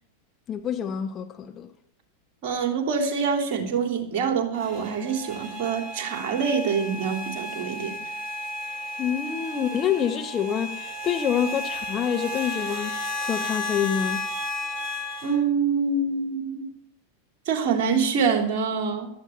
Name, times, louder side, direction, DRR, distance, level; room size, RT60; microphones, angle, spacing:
voice 1, 0.5-1.7 9.0-14.3, left 8 dB, 25° left, 1.1 m, -27 dB
voice 2, 2.4-8.1 15.2-16.7 17.5-19.1, right 5 dB, 45° right, 3.0 m, -25 dB
sound 1, 4.5-15.4, left 1 dB, 20° right, 6.3 m, -33 dB
15.5 x 13.0 x 4.4 m
figure-of-eight pair, 90°, 0 cm